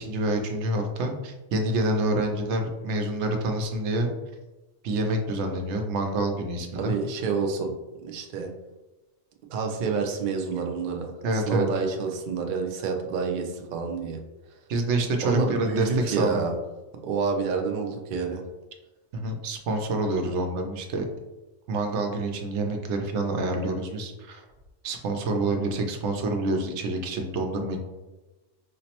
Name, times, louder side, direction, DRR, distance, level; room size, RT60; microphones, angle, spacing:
voice 1, 0.0-4.1 4.8-6.9 11.2-11.6 14.7-16.4 19.1-21.1 21.7-24.4 24.8-27.8, right 2 dB, 80° right, 4 dB, 0.9 m, -27 dB
voice 2, 6.7-7.7 8.0-8.5 9.5-11.1 11.5-14.2 15.2-16.5 17.0-18.4, right 5 dB, 60° right, 3 dB, 0.5 m, -28 dB
5.0 x 2.0 x 2.8 m, 1.1 s
omnidirectional pair, 1.2 m